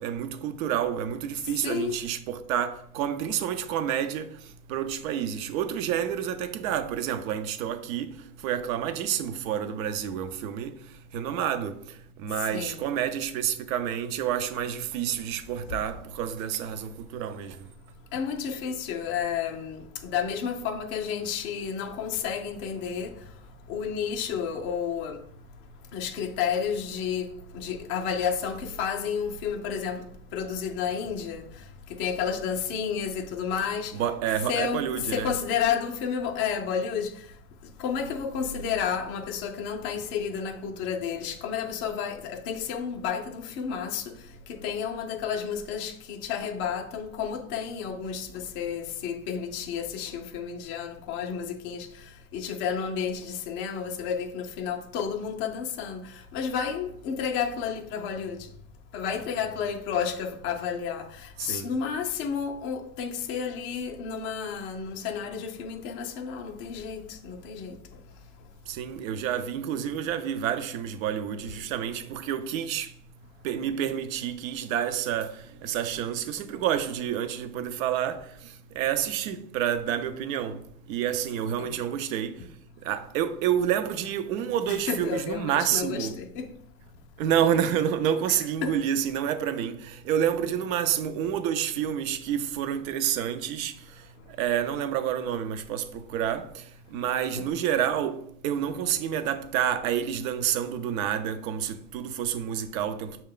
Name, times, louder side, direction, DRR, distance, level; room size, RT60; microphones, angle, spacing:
voice 1, 0.0-4.3 4.7-8.1 8.4-10.8 11.1-11.8 12.2-17.6 33.9-35.3 61.4-61.7 68.7-72.9 73.4-78.2 78.7-80.6 80.9-82.4 82.8-86.2 87.2-93.7 94.4-96.6 96.9-103.2, right 9 dB, 70° right, 0.6 m, -29 dB
voice 2, 1.4-2.0 12.4-12.8 18.1-23.3 23.7-25.2 25.9-30.1 30.3-34.0 34.5-37.3 37.6-44.2 44.5-58.5 58.9-67.8 81.6-81.8 84.7-86.5 88.3-88.8 97.4-97.5, left 7 dB, 30° left, 0.4 m, -31 dB
5.6 x 2.2 x 3.8 m
supercardioid pair, 125°, 43 cm